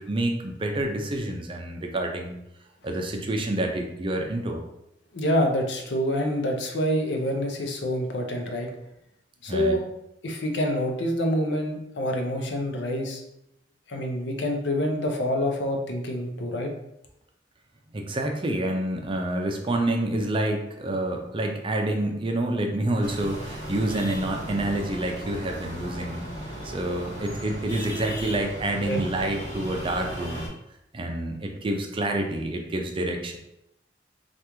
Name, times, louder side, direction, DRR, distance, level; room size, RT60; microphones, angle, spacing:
voice 1, 0.0-2.3 2.8-4.6 9.5-9.8 17.9-26.3 26.6-30.5 30.9-33.4, right 1 dB, 30° right, 3 dB, 0.5 m, -28 dB
voice 2, 5.1-8.7 9.4-9.8 10.2-13.2 13.9-16.7 28.9-29.0, equal, 85° left, 3 dB, 0.6 m, -26 dB
sound 1, 23.0-30.5, equal, 45° left, 1.5 m, -36 dB
3.3 x 2.5 x 3.0 m, 0.82 s
head